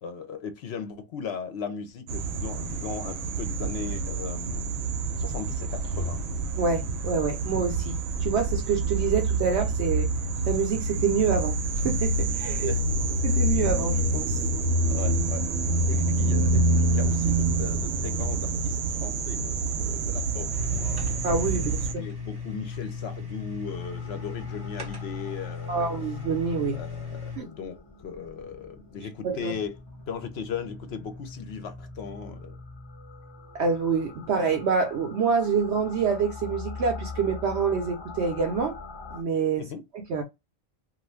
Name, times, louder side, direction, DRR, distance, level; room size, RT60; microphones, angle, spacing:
voice 1, 0.0-4.9 5.2-6.2 12.6-12.9 13.2-13.3 14.9-15.5 15.9-16.7 16.9-21.1 22.0-25.9 26.7-29.7 30.1-32.6 39.6-39.8, left 6 dB, 60° left, 0.8 m, -37 dB
sound 1, 2.1-21.9, right 2 dB, 90° right, 1.0 m, -27 dB
voice 2, 6.6-10.1 10.5-12.7 13.2-14.4 21.2-22.0 25.7-26.8 27.4-27.5 29.2-29.6 33.5-38.8 39.1-39.7 39.9-40.2, right 5 dB, 65° right, 0.8 m, -27 dB
sound 2, 20.5-27.4, left 5 dB, 30° right, 0.4 m, -37 dB
sound 3, 23.6-39.2, left 3 dB, 25° left, 0.6 m, -44 dB
2.5 x 2.4 x 3.2 m
omnidirectional pair, 1.4 m